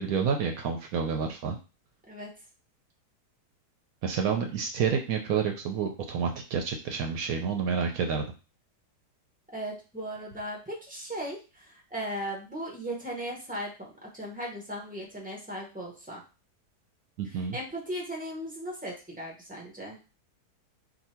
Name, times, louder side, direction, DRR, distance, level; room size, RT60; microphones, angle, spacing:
voice 1, 0.0-1.6 4.0-8.2 17.2-17.6, right 6 dB, 70° right, 4 dB, 0.9 m, -29 dB
voice 2, 9.5-16.2 17.3-20.0, equal, 15° right, -2 dB, 0.3 m, -37 dB
2.7 x 2.5 x 4.2 m, 0.32 s
omnidirectional pair, 1.8 m